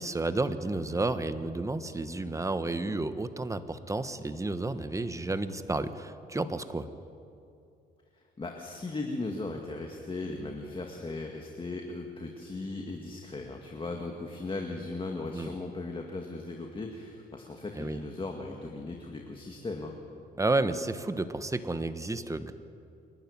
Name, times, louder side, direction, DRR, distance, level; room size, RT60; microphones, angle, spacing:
voice 1, 0.0-6.9 15.3-15.5 17.8-18.0 20.4-22.5, right 2 dB, 15° right, 11 dB, 1.2 m, -31 dB
voice 2, 8.4-19.9, left 2 dB, 25° left, 2 dB, 2.1 m, -37 dB
27.5 x 12.0 x 9.8 m, 2.6 s
cardioid pair, 90°, 20 cm